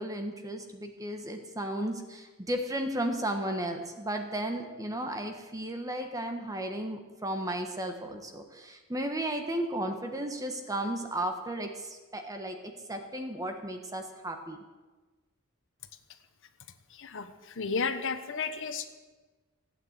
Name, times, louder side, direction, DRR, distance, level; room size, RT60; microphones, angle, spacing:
voice 1, 0.0-14.6, right 1 dB, 15° right, 5 dB, 1.3 m, -34 dB
voice 2, 16.9-18.9, left 5 dB, 65° left, 9 dB, 1.1 m, -33 dB
15.5 x 9.1 x 8.2 m, 1.3 s
head